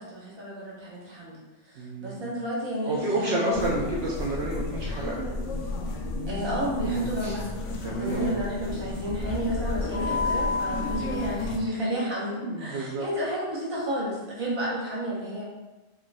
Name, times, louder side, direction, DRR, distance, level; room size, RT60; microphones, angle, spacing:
voice 1, 0.0-1.4 1.6-3.8 6.3-7.5 7.9-15.4, equal, 25° right, -6 dB, 0.9 m, -31 dB
voice 2, 1.8-2.3 2.9-5.2 6.8-7.4 7.8-8.4 12.4-13.1, right 2 dB, 65° right, -3 dB, 0.8 m, -30 dB
sound 1, 3.5-11.6, left 2 dB, 85° left, 0.9 m, -31 dB
4.7 x 3.0 x 2.2 m, 1.1 s
omnidirectional pair, 1.2 m